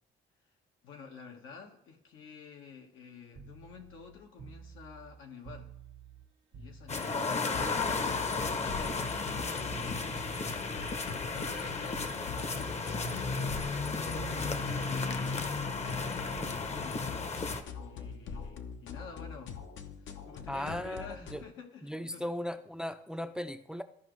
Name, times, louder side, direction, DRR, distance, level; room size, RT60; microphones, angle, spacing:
voice 1, 0.8-5.7 6.5-9.3 9.7-10.7 11.1-15.4 16.0-17.1 17.7-19.6 20.0-22.3, left 5 dB, 90° left, 2 dB, 1.4 m, -50 dB
sound 1, 3.3-7.3 7.6-11.6 11.9-12.8 13.0-13.9 14.2-18.2 19.4-19.6, right 5 dB, 80° right, 1.3 m, -50 dB
sound 2, 6.9-17.6, left 4 dB, 35° left, 0.8 m, -34 dB
sound 3, 7.5-21.4, left 6 dB, 70° left, 0.8 m, -44 dB
voice 2, 20.5-21.4 21.8-23.8, left 1 dB, 5° right, 10 dB, 0.4 m, -37 dB
14.0 x 5.1 x 3.1 m, 0.71 s
cardioid pair, 90°, 20 cm